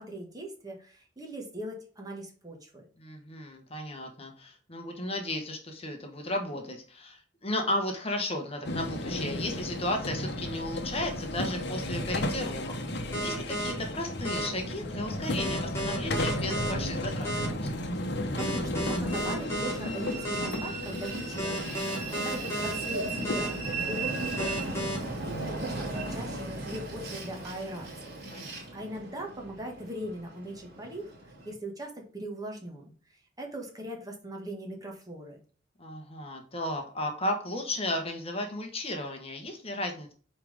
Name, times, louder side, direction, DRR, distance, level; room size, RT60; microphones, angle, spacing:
voice 1, 0.0-2.8 18.3-35.4, right 1 dB, 20° right, 1 dB, 1.7 m, -40 dB
voice 2, 3.0-17.8 28.3-28.6 35.8-40.1, left 1 dB, 30° left, 4 dB, 1.3 m, -34 dB
sound 1, 8.6-26.2, left 1 dB, 60° left, 1.0 m, -34 dB
sound 2, 13.1-13.7 14.2-14.5 15.4-16.7 17.2-17.5 18.4-19.7 20.2-20.5 21.4-22.7 23.2-23.5 24.4-25.0, equal, 15° left, 2.9 m, -32 dB
Train, 19.1-31.5, right 2 dB, 55° right, 2.7 m, -37 dB
5.8 x 4.9 x 5.1 m, 0.42 s
head